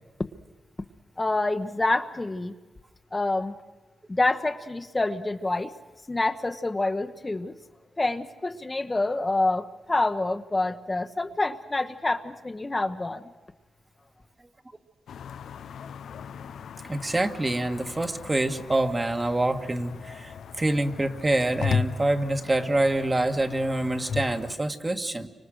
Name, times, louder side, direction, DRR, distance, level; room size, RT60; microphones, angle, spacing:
voice 1, 1.2-2.5 3.1-3.5 4.1-5.7 6.1-7.6 8.0-13.3, left 2 dB, 25° left, 7 dB, 1.1 m, -27 dB
sound 1, 15.1-24.6, left 6 dB, 85° left, 0.8 m, -36 dB
voice 2, 16.9-25.3, right 1 dB, 25° right, 6 dB, 1.7 m, -26 dB
29.5 x 25.5 x 6.4 m, 1.2 s
cardioid pair, 75°, 0 cm